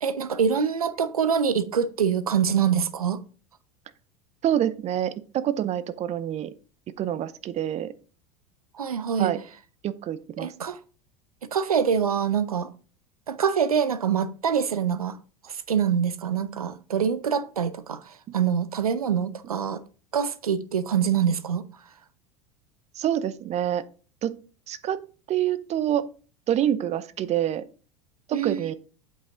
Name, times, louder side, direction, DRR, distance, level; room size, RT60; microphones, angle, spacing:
voice 1, 0.0-3.2 8.7-9.3 10.4-10.8 11.5-12.7 13.3-15.2 15.4-19.8 20.1-21.6 28.3-28.7, right 7 dB, 90° right, 0.6 m, -25 dB
voice 2, 4.4-6.5 7.0-7.9 9.2-9.4 9.8-10.5 22.9-23.8 24.2-24.4 24.7-25.0 25.3-26.0 26.5-27.6 28.3-28.7, right 11 dB, 35° right, 0.7 m, -26 dB
8.0 x 5.4 x 3.7 m
hypercardioid pair, 80°, 18 cm